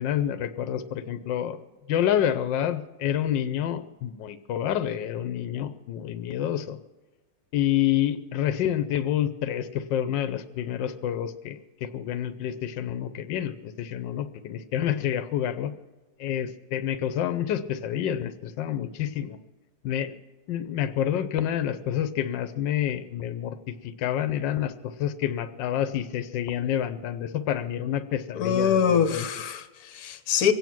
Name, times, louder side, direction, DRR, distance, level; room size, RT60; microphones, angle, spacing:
voice 1, 0.0-1.6 1.9-6.8 7.5-15.7 16.2-19.4 19.8-20.2 20.5-29.2, left 10 dB, 85° left, 1.5 m, -28 dB
voice 2, 28.3-30.5, left 7 dB, 60° left, 1.5 m, -24 dB
23.5 x 9.4 x 6.1 m
omnidirectional pair, 2.0 m